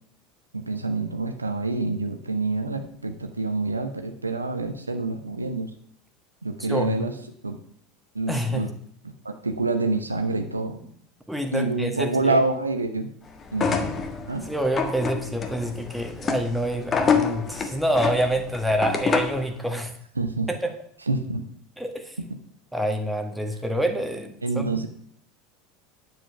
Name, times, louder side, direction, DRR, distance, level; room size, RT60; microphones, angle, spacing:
voice 1, 0.5-5.7 6.4-7.1 7.4-7.6 8.1-8.7 9.0-10.8 11.5-13.1 13.5-13.9 14.3-14.5 20.2-20.5 21.1-21.4 22.2-22.3 24.4-24.9, right 3 dB, 85° right, 7 dB, 1.0 m, -27 dB
voice 2, 6.7-7.1 8.3-8.6 11.3-12.4 14.5-19.9 20.5-20.7 21.8-22.1 22.7-24.7, equal, 5° right, 5 dB, 1.6 m, -27 dB
sound 1, 13.5-19.5, left 5 dB, 30° left, 1.5 m, -27 dB
10.0 x 7.8 x 5.9 m, 0.63 s
figure-of-eight pair, 75°, 0 cm